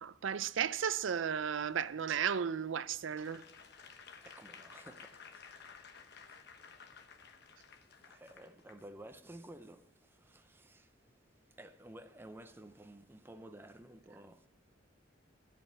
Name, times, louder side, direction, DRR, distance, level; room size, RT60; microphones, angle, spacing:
voice 1, 0.0-3.4, right 7 dB, 90° right, 0.5 m, -34 dB
Applause / Crowd, 3.1-8.8 9.4-9.5, left 6 dB, 60° left, 1.0 m, -55 dB
voice 2, 4.2-5.8 6.3-6.4 6.9-7.1 8.1-10.9 11.6-14.5, right 1 dB, 10° right, 0.6 m, -53 dB
14.0 x 5.3 x 8.6 m
head